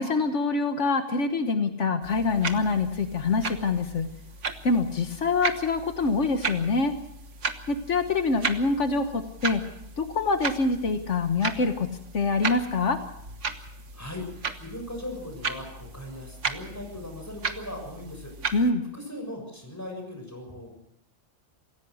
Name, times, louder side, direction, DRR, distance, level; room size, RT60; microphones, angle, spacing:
voice 1, 0.0-4.1 4.6-6.9 7.7-9.6 10.0-13.0 18.5-18.8, left 3 dB, 80° left, 7 dB, 1.6 m, -25 dB
sound 1, 2.0-18.7, right 4 dB, 85° right, 1.7 m, -36 dB
voice 2, 13.9-18.6 18.9-20.7, left 1 dB, 15° left, 3 dB, 6.8 m, -39 dB
26.5 x 16.5 x 6.4 m, 0.77 s
omnidirectional pair, 1.2 m